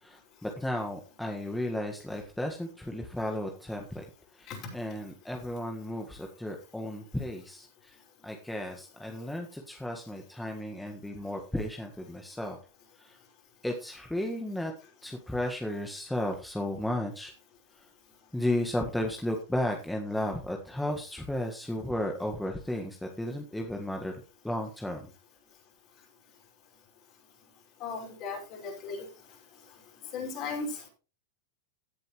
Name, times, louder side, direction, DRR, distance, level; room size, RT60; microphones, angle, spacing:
voice 1, 0.0-4.0 4.3-8.0 8.2-12.6 13.0-13.2 13.6-14.7 15.0-17.3 17.8-17.9 18.3-24.1 24.4-25.0, left 1 dB, 5° left, 2 dB, 1.6 m, -34 dB
voice 2, 27.8-29.1 30.1-30.9, left 4 dB, 45° left, 1 dB, 5.4 m, -36 dB
16.5 x 7.5 x 3.1 m, 0.32 s
hypercardioid pair, 105°, 0 cm